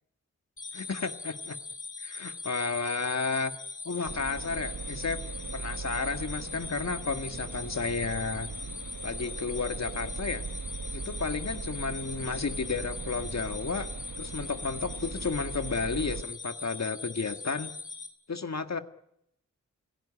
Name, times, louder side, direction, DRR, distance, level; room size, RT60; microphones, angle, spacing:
sound 1, 0.6-18.1, left 4 dB, 85° left, 3.8 m, -41 dB
voice 1, 0.7-1.6 2.0-3.5 3.9-5.2 5.5-8.5 9.0-10.4 10.9-13.9 14.2-17.7 18.3-18.8, left 4 dB, 60° left, 8 dB, 1.8 m, -32 dB
sound 2, 4.0-16.2, right 5 dB, 75° right, 1.1 m, -40 dB
27.0 x 17.0 x 9.9 m, 0.78 s
wide cardioid pair, 70°, 30 cm